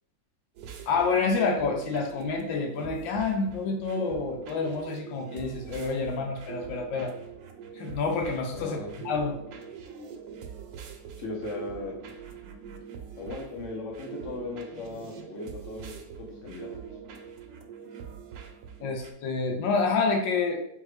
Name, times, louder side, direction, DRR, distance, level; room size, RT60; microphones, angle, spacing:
sound 1, 0.6-19.1, right 7 dB, 75° right, 1.2 m, -43 dB
voice 1, 0.9-7.1 7.8-8.8 9.0-9.4 18.8-20.7, left 4 dB, 80° left, 3 dB, 1.3 m, -28 dB
voice 2, 8.5-8.9 11.2-12.0 13.2-16.7, left 3 dB, 55° left, -1 dB, 0.9 m, -37 dB
3.6 x 3.2 x 3.1 m, 0.76 s
omnidirectional pair, 2.0 m